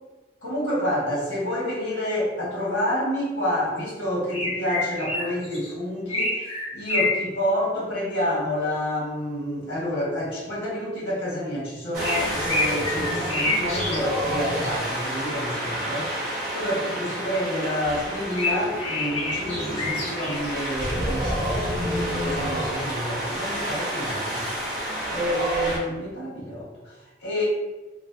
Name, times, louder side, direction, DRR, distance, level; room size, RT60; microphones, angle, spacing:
voice 1, 0.4-16.1 16.5-27.5, equal, 90° left, -6 dB, 1.4 m, -29 dB
sound 1, 4.3-5.7 6.1-7.2 12.0-14.0 14.5-14.7 18.1-20.5, left 2 dB, 35° left, 0.8 m, -27 dB
Wind, 11.9-25.8, equal, 50° right, 0.8 m, -29 dB
3.1 x 2.3 x 2.5 m, 1.2 s
head